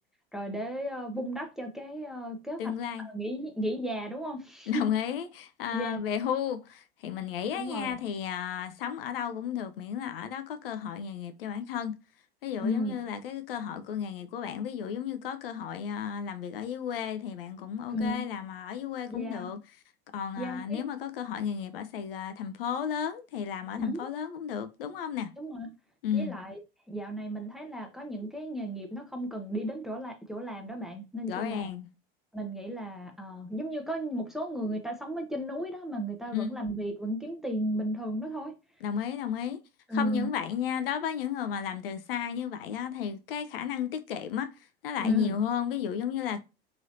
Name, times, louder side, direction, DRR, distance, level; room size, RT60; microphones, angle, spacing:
voice 1, 0.3-2.7 3.0-4.9 5.7-6.0 7.5-8.0 12.6-13.0 17.9-18.2 19.1-19.5 20.4-20.8 23.8-24.1 25.4-25.7 26.1-26.6 26.9-31.7 32.3-38.5 39.9-40.3 45.0-45.4, equal, ahead, 0.6 m, -34 dB
voice 2, 2.6-3.1 4.7-12.0 12.4-19.6 20.1-25.3 26.0-26.4 31.2-31.9 36.3-36.6 38.8-39.6 39.9-46.4, left 8 dB, 70° left, 0.4 m, -33 dB
3.0 x 2.7 x 2.7 m
figure-of-eight pair, 75°, 30 cm